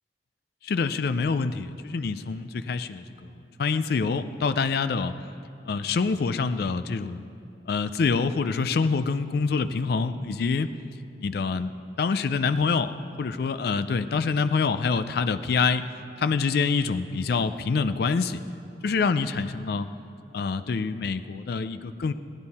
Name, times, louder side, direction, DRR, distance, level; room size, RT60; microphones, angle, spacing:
voice 1, 0.6-3.3 3.6-5.1 5.7-7.3 7.7-10.7 11.2-11.7 12.0-15.8 16.2-18.4 18.8-19.9 20.3-22.1, left 4 dB, 55° left, 11 dB, 0.4 m, -26 dB
15.0 x 10.5 x 4.2 m, 2.7 s
head